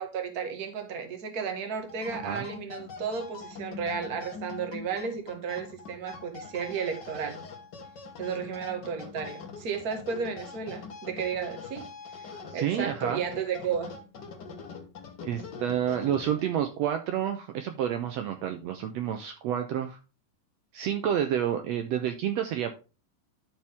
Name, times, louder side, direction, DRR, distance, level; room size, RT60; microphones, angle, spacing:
voice 1, 0.0-7.4 8.2-11.9 12.2-13.9, right 6 dB, 45° right, 1.2 m, -33 dB
sound 1, 1.8-16.7, left 5 dB, 80° left, 0.9 m, -43 dB
voice 2, 12.5-13.2 15.2-20.0 20.7-22.7, right 10 dB, 85° right, 1.5 m, -29 dB
12.0 x 4.5 x 3.5 m
omnidirectional pair, 4.0 m